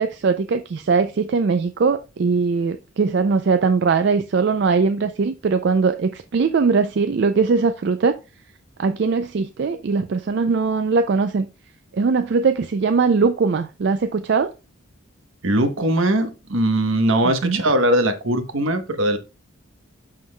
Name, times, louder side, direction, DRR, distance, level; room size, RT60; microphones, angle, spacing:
voice 1, 0.0-8.1 8.8-11.5 11.9-14.5 17.2-17.6, right 4 dB, 55° right, 0.4 m, -20 dB
voice 2, 15.4-19.2, right 1 dB, 70° right, 1.0 m, -20 dB
11.5 x 3.8 x 2.2 m
head